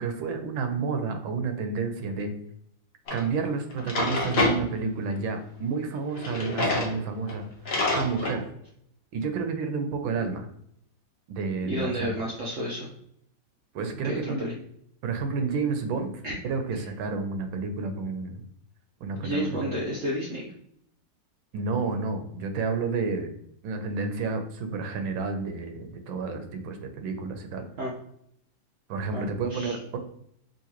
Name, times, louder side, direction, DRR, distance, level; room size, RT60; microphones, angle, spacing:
voice 1, 0.0-2.3 3.1-7.5 7.9-8.4 9.1-10.5 11.3-12.1 13.7-14.4 15.0-18.4 19.0-19.8 21.5-23.3 23.6-27.7 28.9-30.0, right 4 dB, 90° right, 6 dB, 1.4 m, -30 dB
Drawer open or close, 3.1-3.2 3.7-4.6 6.1-6.9 7.3-7.4 7.7-8.4, left 2 dB, 50° left, 0.7 m, -26 dB
voice 2, 11.6-12.9 14.0-14.5 16.2-16.3 19.2-20.5 27.8-27.9 29.1-29.8, equal, 75° right, -3 dB, 0.7 m, -31 dB
3.7 x 2.8 x 2.9 m, 0.71 s
omnidirectional pair, 2.1 m